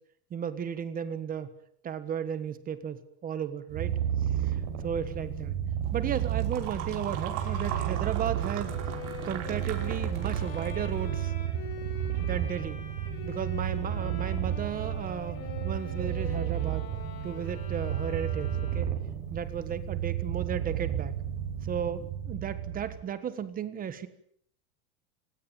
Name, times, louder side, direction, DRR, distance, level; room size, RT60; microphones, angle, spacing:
voice 1, 0.3-1.5 1.8-4.0 4.4-5.6 5.9-8.7 9.2-11.3 12.2-12.8 13.2-15.4 15.6-16.9 17.2-18.9 19.3-21.2 21.6-24.1, right 8 dB, 20° right, 12 dB, 1.4 m, -34 dB
Purr, 3.7-23.0, right 10 dB, 50° right, 6.0 m, -32 dB
sound 1, 5.8-11.1, right 11 dB, 70° right, 5.4 m, -39 dB
Bowed string instrument, 7.3-19.1, left 7 dB, 60° left, 7.6 m, -45 dB
27.5 x 16.5 x 9.1 m, 0.68 s
supercardioid pair, 175°, 44 cm